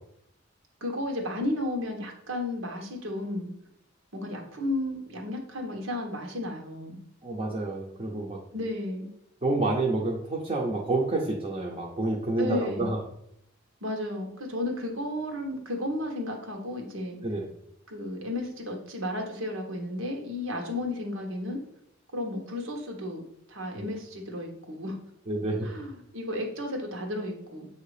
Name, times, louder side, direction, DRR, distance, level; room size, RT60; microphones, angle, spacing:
voice 1, 0.8-3.5 4.1-7.0 8.5-9.1 12.4-12.9 13.8-17.2 17.9-21.6 22.1-23.2 23.5-25.0 25.6-27.7, left 1 dB, 85° right, 2 dB, 1.3 m, -33 dB
voice 2, 7.2-8.4 9.4-13.0 17.2-17.5 25.3-25.7, right 2 dB, 30° right, -2 dB, 0.8 m, -28 dB
7.3 x 2.8 x 4.9 m, 0.74 s
head